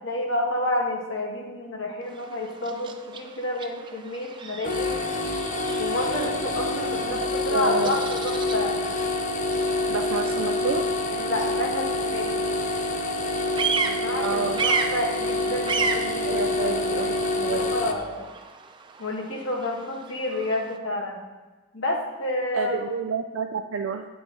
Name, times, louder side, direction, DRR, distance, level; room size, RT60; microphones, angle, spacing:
voice 1, 0.0-5.0 5.8-8.8 11.1-12.4 13.9-18.3 19.0-21.2 21.7-22.8, left 1 dB, 70° left, 0 dB, 1.5 m, -30 dB
Bird vocalization bird call bird song, 2.0-20.8, right 5 dB, 25° right, 0.4 m, -35 dB
sound 1, 4.6-17.9, left 2 dB, 40° left, 0.5 m, -27 dB
voice 2, 7.1-8.0 9.9-10.9 14.2-14.6 16.2-17.1 17.4-17.7 22.5-24.1, right 4 dB, 85° right, 5 dB, 0.4 m, -29 dB
9.3 x 5.9 x 3.8 m, 1.2 s
head